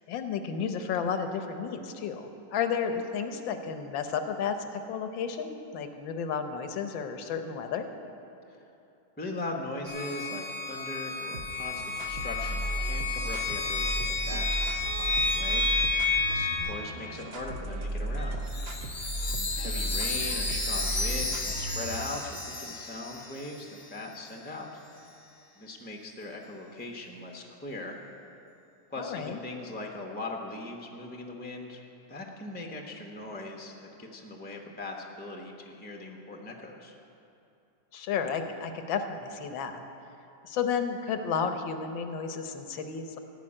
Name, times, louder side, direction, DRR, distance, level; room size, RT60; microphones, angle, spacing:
voice 1, 0.1-7.9 16.6-16.7 29.0-29.4 37.9-39.8 40.4-43.2, left 6 dB, 85° left, 7 dB, 1.6 m, -32 dB
voice 2, 9.2-15.7 16.3-18.5 19.3-24.7 25.6-28.0 28.9-31.8 32.1-36.9, left 2 dB, 10° left, 1 dB, 0.6 m, -40 dB
sound 1, 9.9-16.6, left 3 dB, 85° right, 3.4 m, -30 dB
sound 2, 11.3-22.2, right 1 dB, 50° right, 0.8 m, -35 dB
Chime, 18.5-24.0, left 3 dB, 25° left, 1.1 m, -34 dB
15.5 x 5.7 x 8.7 m, 2.8 s
omnidirectional pair, 2.0 m